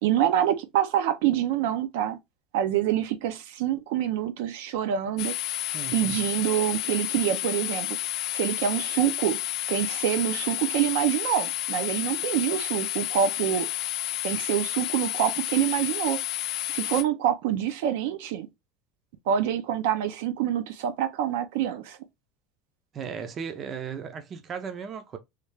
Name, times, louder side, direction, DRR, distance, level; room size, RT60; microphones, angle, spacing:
voice 1, 0.0-2.2 2.5-5.3 5.9-8.0 8.3-9.4 9.7-13.7 14.2-16.2 16.7-18.5 19.3-22.0, right 10 dB, 75° right, 0.5 m, -26 dB
sound 1, 5.2-17.0, left 12 dB, 45° left, 0.4 m, -31 dB
voice 2, 5.7-6.2 22.9-25.2, right 6 dB, 25° right, 0.4 m, -36 dB
3.2 x 2.3 x 3.2 m
cardioid pair, 165°, 0 cm